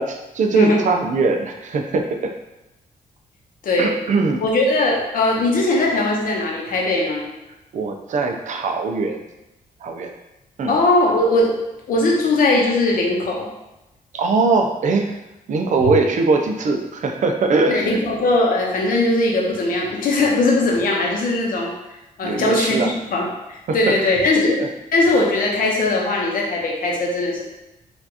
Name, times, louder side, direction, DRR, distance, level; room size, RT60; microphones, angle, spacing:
voice 1, 0.0-2.3 3.8-4.4 7.7-9.2 9.8-10.1 10.6-10.7 14.1-15.2 15.5-18.0 22.2-22.9 23.7-23.9 24.3-24.7, right 3 dB, 55° right, 3 dB, 0.5 m, -21 dB
voice 2, 3.6-3.9 4.4-7.3 10.7-11.5 11.9-13.5 17.7-21.7 22.2-24.6 24.9-27.4, left 2 dB, 70° left, -2 dB, 0.9 m, -19 dB
4.3 x 2.5 x 2.8 m, 0.95 s
cardioid pair, 110°, 15 cm